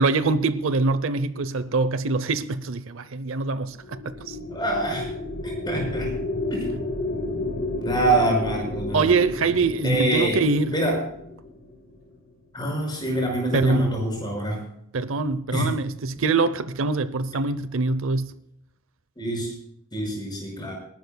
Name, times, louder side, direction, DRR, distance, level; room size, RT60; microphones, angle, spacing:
voice 1, 0.0-4.0 4.3-4.4 8.9-10.7 13.5-13.9 14.9-18.3, right 3 dB, 65° right, 0.7 m, -24 dB
sound 1, 3.7-12.2, left 2 dB, 50° left, 3.6 m, -32 dB
voice 2, 4.5-5.1 5.4-6.1 6.5-6.6 7.3-7.4 7.8-9.1 9.8-10.4 10.7-11.0 12.5-14.6 15.5-15.7 19.2-19.5 19.9-20.7, right 1 dB, 20° left, 5.7 m, -25 dB
28.5 x 12.0 x 2.3 m
head